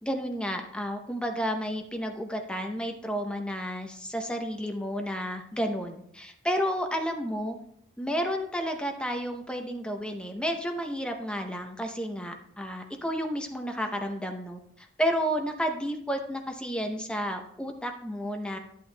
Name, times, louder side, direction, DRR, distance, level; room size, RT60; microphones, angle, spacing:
voice 1, 0.0-7.6 8.0-18.6, equal, 5° left, 4 dB, 0.7 m, -31 dB
12.0 x 8.3 x 2.2 m, 0.74 s
head